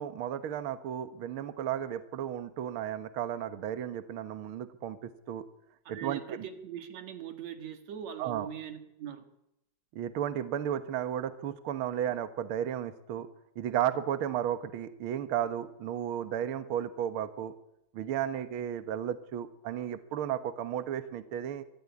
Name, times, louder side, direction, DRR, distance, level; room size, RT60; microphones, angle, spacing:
voice 1, 0.0-5.4 5.9-6.5 8.2-8.5 9.9-13.3 13.6-17.5 17.9-21.6, right 10 dB, 80° right, 11 dB, 1.1 m, -34 dB
voice 2, 5.8-9.2, right 9 dB, 55° right, 7 dB, 2.9 m, -41 dB
24.5 x 13.5 x 9.6 m, 0.83 s
omnidirectional pair, 4.2 m